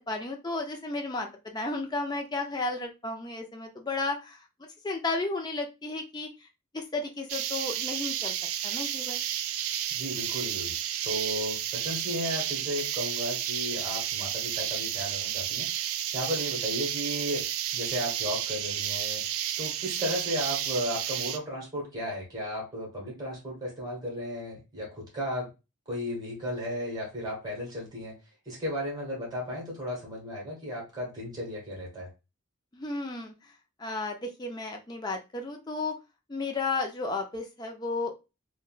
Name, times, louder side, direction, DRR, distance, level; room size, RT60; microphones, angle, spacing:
voice 1, 0.0-4.4 4.8-6.5 6.7-8.4 8.6-9.2 20.0-20.1 32.7-33.5 33.8-35.9 36.3-38.1, left 3 dB, 20° left, 3 dB, 0.4 m, -33 dB
sound 1, 7.3-21.4, right 11 dB, 75° right, 0.3 m, -32 dB
voice 2, 9.9-10.7 11.0-25.5 25.9-28.2 28.4-32.1, equal, 20° right, -2 dB, 1.2 m, -34 dB
3.5 x 2.2 x 2.4 m, 0.27 s
head